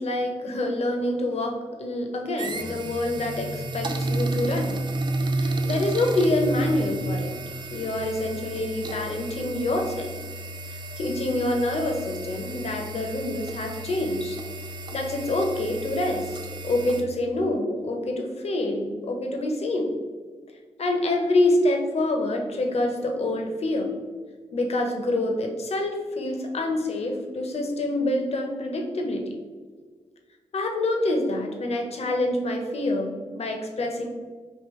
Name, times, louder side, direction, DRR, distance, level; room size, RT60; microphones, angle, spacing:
voice 1, 0.0-4.8 5.2-7.4 7.7-10.2 10.7-14.4 14.9-19.9 20.8-23.9 24.5-29.3 30.5-34.1, left 1 dB, 60° left, 3 dB, 0.7 m, -26 dB
sound 1, 2.4-8.0, right 2 dB, 10° left, 0.6 m, -29 dB
sound 2, 2.4-17.0, right 2 dB, 40° right, 0.4 m, -37 dB
3.7 x 2.5 x 3.0 m, 1.5 s
cardioid pair, 50°, 12 cm